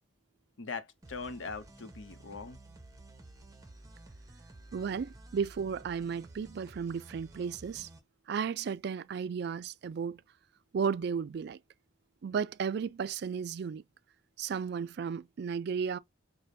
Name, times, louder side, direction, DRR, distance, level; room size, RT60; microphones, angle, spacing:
voice 1, 0.6-2.6, left 4 dB, 85° left, 0.7 m, -41 dB
sound 1, 1.0-8.0, right 2 dB, 20° right, 0.9 m, -52 dB
voice 2, 4.7-7.9 8.3-10.2 10.7-11.6 12.2-13.8 14.4-16.0, right 6 dB, 60° right, 0.3 m, -34 dB
5.0 x 2.1 x 2.7 m
head